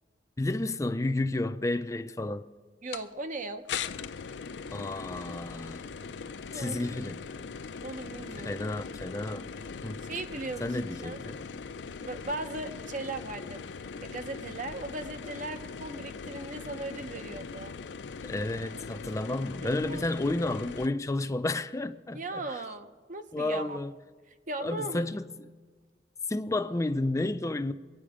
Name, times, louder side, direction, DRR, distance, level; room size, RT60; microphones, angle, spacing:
voice 1, 0.4-2.5 4.7-5.9 6.5-7.2 8.5-9.5 9.8-10.0 10.6-11.4 18.2-22.4 23.3-23.9 24.6-25.3 26.3-27.7, left 2 dB, 20° left, 0.4 m, -31 dB
voice 2, 2.8-3.6 6.5-7.0 7.8-8.6 10.1-11.2 12.0-13.6 14.0-17.7 19.6-20.1 22.1-23.8 24.5-25.0, right 2 dB, 45° right, 0.8 m, -38 dB
sound 1, 2.9-3.1 3.7-20.9, left 5 dB, 85° left, 0.5 m, -40 dB
22.5 x 9.4 x 5.0 m
head